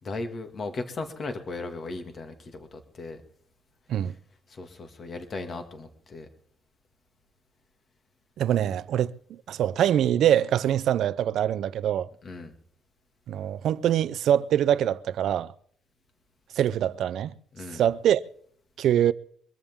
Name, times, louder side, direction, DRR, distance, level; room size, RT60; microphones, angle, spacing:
voice 1, 0.0-3.2 4.5-6.3 12.2-12.5 17.5-17.8, left 3 dB, 35° left, 2.2 m, -37 dB
voice 2, 8.4-12.1 13.3-15.5 16.6-17.3 17.7-18.2 18.8-19.1, right 10 dB, 70° right, 0.6 m, -24 dB
23.0 x 14.0 x 3.7 m
cardioid pair, 170°, 0 cm